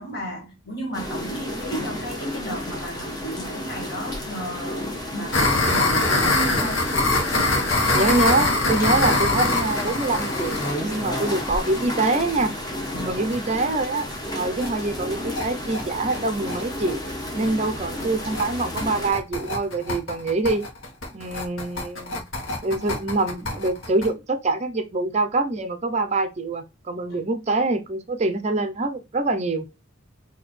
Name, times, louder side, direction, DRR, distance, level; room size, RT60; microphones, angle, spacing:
voice 1, 0.0-6.9 12.9-13.3 27.1-27.2, equal, 50° left, 2.0 m, -34 dB
sound 1, 0.9-19.1, left 1 dB, 20° left, 1.2 m, -32 dB
sound 2, 5.3-13.0 13.3-13.4 13.7-13.8 14.1-14.2 14.4-14.7 15.0-24.1, left 2 dB, 70° left, 1.3 m, -24 dB
voice 2, 7.9-12.5 13.1-14.1 14.3-17.0 17.3-20.6 21.1-22.3 22.6-29.7, right 2 dB, 35° right, 0.5 m, -25 dB
6.0 x 2.8 x 3.1 m
head